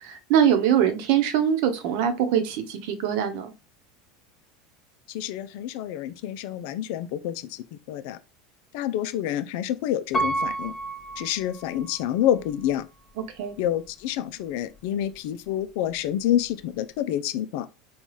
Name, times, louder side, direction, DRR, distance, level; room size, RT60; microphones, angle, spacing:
voice 1, 0.0-3.5 13.3-13.5, right 9 dB, 70° right, 0.8 m, -23 dB
voice 2, 5.1-8.2 8.7-10.7 11.2-12.8 13.6-17.7, left 11 dB, 65° left, 0.3 m, -28 dB
Piano, 10.1-12.1 12.7-12.8, right 2 dB, 20° left, 1.2 m, -30 dB
4.0 x 2.3 x 3.1 m
hypercardioid pair, 100°, 0 cm